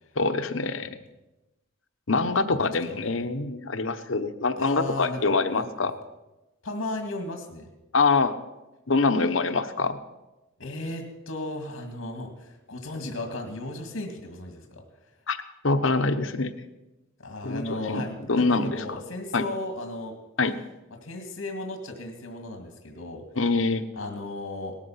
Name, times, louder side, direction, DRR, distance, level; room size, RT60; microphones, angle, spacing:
voice 1, 0.2-0.9 2.1-5.9 7.9-8.4 8.9-10.0 15.3-15.4 15.6-16.5 17.4-17.6 17.9-18.0 18.3-18.8 19.3-19.4 20.4-20.5 23.4-23.9, left 3 dB, 70° left, 10 dB, 1.1 m, -24 dB
voice 2, 2.5-3.2 4.6-5.7 6.6-7.7 10.6-14.8 17.2-20.2 20.9-23.2 23.9-24.8, left 2 dB, 90° left, 4 dB, 2.0 m, -35 dB
19.0 x 13.5 x 5.8 m, 1.0 s
head